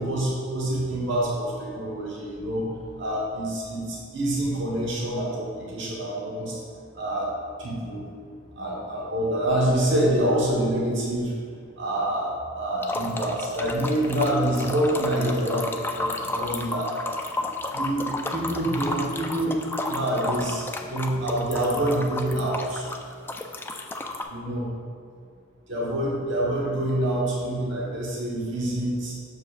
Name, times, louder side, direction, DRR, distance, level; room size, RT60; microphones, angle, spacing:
voice 1, 0.0-2.7 3.0-6.6 6.9-7.3 7.6-8.0 8.6-11.3 11.8-16.9 17.3-19.6 19.9-22.9 24.3-24.7 25.7-29.1, right 1 dB, 65° right, -5 dB, 1.3 m, -26 dB
sound 1, 12.8-24.2, left 2 dB, 10° left, 0.3 m, -32 dB
7.2 x 6.5 x 2.5 m, 2.2 s
head